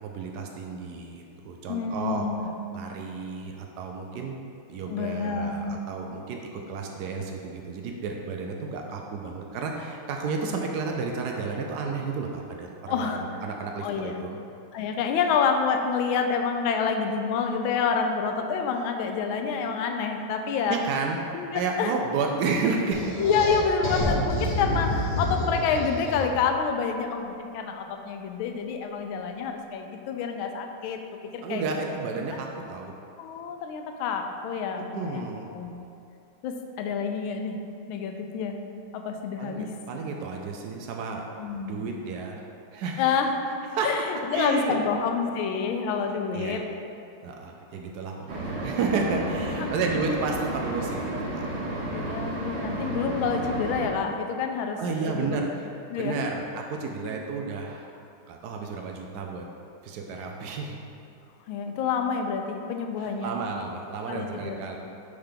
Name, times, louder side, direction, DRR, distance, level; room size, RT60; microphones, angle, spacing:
voice 1, 0.0-2.3 2.7-4.3 4.7-14.4 20.7-21.2 21.5-23.1 31.4-32.9 34.9-35.5 39.4-41.2 41.7-42.4 42.7-43.1 43.7-43.9 44.3-44.8 46.3-46.6 47.2-51.6 54.8-55.7 56.0-57.9 58.3-59.5 59.8-60.8 63.0-64.8, right 4 dB, 90° right, 1 dB, 0.8 m, -31 dB
voice 2, 1.7-2.5 4.9-5.8 12.9-13.2 13.8-14.1 14.7-20.8 21.3-21.9 23.2-31.0 31.3-31.6 33.2-35.8 36.4-37.6 37.9-38.6 38.9-39.7 41.4-41.8 43.0-43.3 43.8-46.6 51.9-55.5 55.9-56.1 61.5-63.3 64.1-64.6, left 6 dB, 75° left, 4 dB, 1.3 m, -28 dB
sound 1, 22.9-26.5, left 2 dB, 50° left, 1.9 m, -29 dB
sound 2, 24.0-26.0, right 1 dB, 25° left, 0.6 m, -32 dB
sound 3, 48.3-53.9, right 1 dB, 60° right, 1.7 m, -32 dB
6.7 x 3.5 x 5.7 m, 2.6 s
omnidirectional pair, 2.3 m